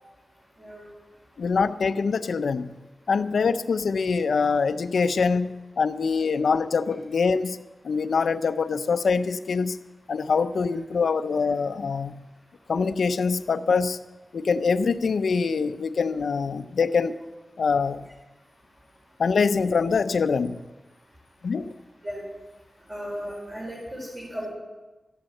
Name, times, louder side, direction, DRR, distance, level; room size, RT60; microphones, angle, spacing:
voice 1, 1.4-2.8 3.1-7.6 7.8-9.8 10.1-12.2 12.7-14.0 14.3-17.2 17.6-18.1 19.2-20.6 21.4-21.7, left 5 dB, 85° left, 11 dB, 0.5 m, -24 dB
voice 2, 22.9-24.5, equal, 30° right, -7 dB, 5.0 m, -35 dB
12.5 x 9.9 x 7.7 m, 1.2 s
wide cardioid pair, 105°, 0 cm